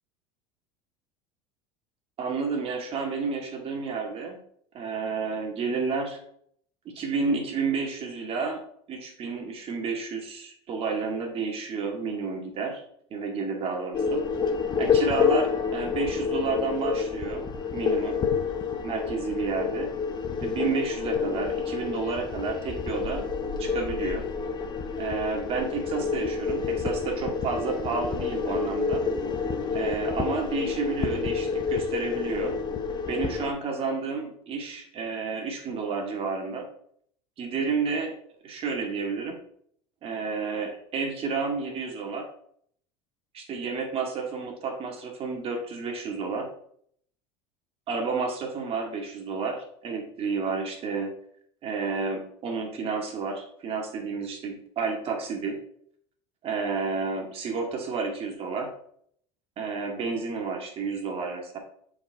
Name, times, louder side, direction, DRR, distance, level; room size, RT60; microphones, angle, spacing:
voice 1, 2.2-4.4 4.7-6.2 6.9-8.6 8.9-12.8 13.1-14.2 14.8-17.5 17.7-18.2 18.8-19.9 20.4-23.3 23.6-24.3 25.0-29.0 29.7-32.5 33.1-36.7 37.4-38.1 38.4-39.4 40.0-42.3 43.3-46.5 47.9-51.1 51.6-55.6 56.4-58.7 59.6-61.6, right 4 dB, 45° right, 2 dB, 2.0 m, -31 dB
sound 1, 13.9-33.5, left 6 dB, 30° left, 1.0 m, -28 dB
7.1 x 4.8 x 4.5 m, 0.67 s
supercardioid pair, 105°, 14 cm